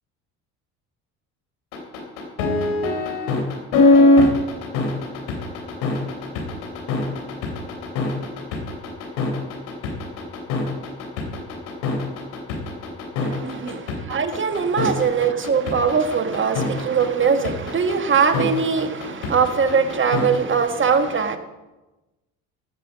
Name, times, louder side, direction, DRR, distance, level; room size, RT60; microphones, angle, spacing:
sound 1, 1.7-20.4, left 2 dB, 85° left, 3.1 m, -22 dB
voice 1, 13.2-13.8 14.1-21.4, right 6 dB, 30° right, 1.5 m, -21 dB
16.5 x 5.7 x 7.3 m
supercardioid pair, 95°, 37 cm